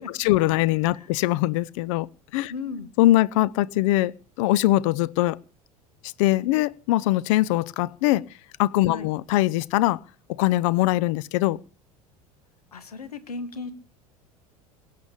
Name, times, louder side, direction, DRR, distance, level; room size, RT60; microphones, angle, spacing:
voice 1, 0.0-2.1 2.3-2.5 3.0-4.1 4.4-5.4 6.2-8.3 8.6-10.0 10.4-11.6, left 16 dB, 55° left, 0.6 m, -22 dB
voice 2, 2.5-2.9 8.9-9.1 12.7-13.7, left 4 dB, 80° left, 1.6 m, -35 dB
23.0 x 8.5 x 5.1 m
figure-of-eight pair, 75°, 19 cm